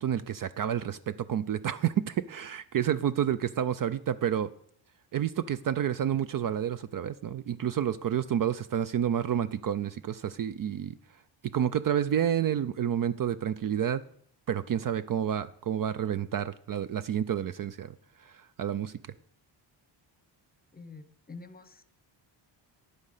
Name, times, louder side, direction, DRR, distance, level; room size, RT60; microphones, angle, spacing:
voice 1, 0.0-4.5 5.1-10.9 11.5-14.0 14.5-17.9 18.2-18.9, right 9 dB, 45° right, 0.5 m, -29 dB
voice 2, 20.7-21.8, left 4 dB, 20° left, 0.9 m, -47 dB
10.0 x 9.3 x 6.6 m
cardioid pair, 115°, 46 cm